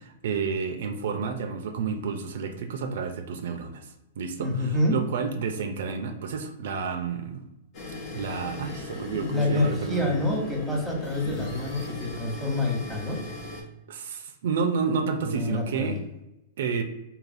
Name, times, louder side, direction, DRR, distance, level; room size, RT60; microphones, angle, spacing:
voice 1, 0.0-7.5 8.1-10.2 13.9-16.0 16.6-16.8, right 5 dB, 70° right, 7 dB, 0.3 m, -30 dB
voice 2, 4.4-5.0 8.5-8.7 9.0-13.2 15.3-16.0, left 2 dB, 10° left, -3 dB, 0.9 m, -27 dB
sound 1, 7.7-13.6, left 1 dB, 45° left, 0.8 m, -37 dB
3.2 x 2.3 x 2.5 m, 0.95 s
hypercardioid pair, 125°, 0 cm